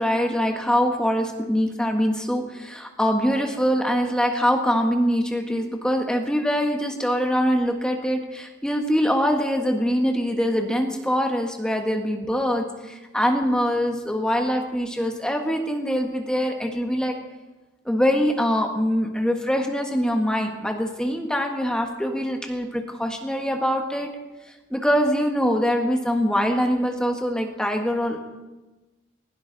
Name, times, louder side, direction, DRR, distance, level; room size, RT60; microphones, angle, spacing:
voice 1, 0.0-17.1 17.8-24.1 24.7-28.3, equal, 5° left, 2 dB, 1.5 m, -23 dB
19.5 x 16.5 x 4.0 m, 1.1 s
head